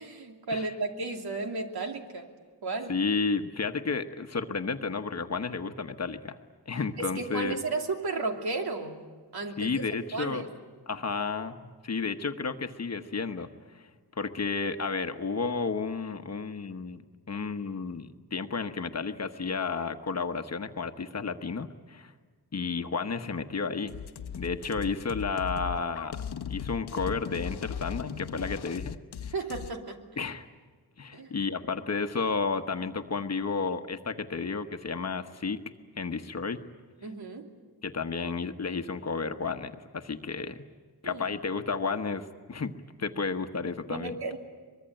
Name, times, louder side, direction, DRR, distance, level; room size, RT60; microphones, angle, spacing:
voice 1, 0.0-2.3 2.6-3.0 7.0-9.0 9.3-9.7 10.1-10.4 29.3-30.3 31.1-31.4 37.0-37.5 41.0-41.2 43.9-44.4, right 3 dB, 65° right, 3 dB, 2.8 m, -34 dB
voice 2, 2.9-6.4 6.7-7.6 9.6-10.5 10.9-13.9 14.2-17.0 17.3-22.1 22.5-24.0 24.3-26.2 26.5-29.0 30.2-30.5 31.0-35.6 36.0-36.6 37.8-40.6 41.0-42.7 43.0-44.2, left 4 dB, 40° left, 7 dB, 1.2 m, -32 dB
sound 1, 23.9-29.7, left 8 dB, 70° left, 0.9 m, -37 dB
23.5 x 22.5 x 9.0 m, 1.5 s
wide cardioid pair, 120°, 40 cm